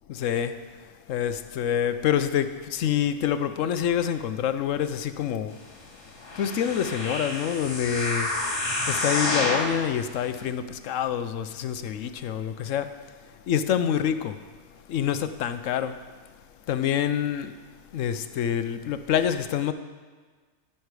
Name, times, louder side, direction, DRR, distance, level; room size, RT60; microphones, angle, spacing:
voice 1, 0.1-0.8 1.1-5.6 6.4-8.3 8.9-13.0 13.5-14.4 14.9-16.0 16.7-17.6 17.9-19.7, left 9 dB, 80° left, 1.0 m, -27 dB
sound 1, 6.2-9.8 10.4-10.5, left 2 dB, 65° left, 2.3 m, -28 dB
16.5 x 5.9 x 4.8 m
omnidirectional pair, 1.3 m